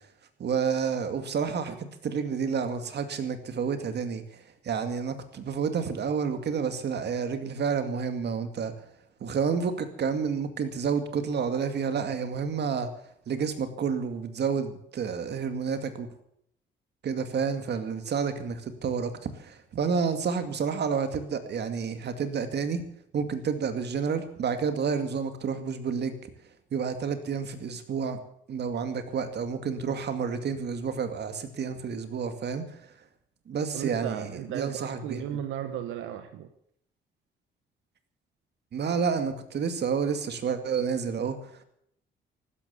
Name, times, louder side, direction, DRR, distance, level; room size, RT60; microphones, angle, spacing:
voice 1, 0.4-8.7 9.2-12.9 13.3-16.1 17.0-22.8 23.1-26.2 26.7-28.2 28.5-32.8 33.5-35.2 38.7-41.4, right 6 dB, 60° right, 9 dB, 2.2 m, -30 dB
voice 2, 33.7-36.5, right 10 dB, 85° right, 9 dB, 1.2 m, -35 dB
15.5 x 13.0 x 7.0 m, 0.71 s
cardioid pair, 90°, 20 cm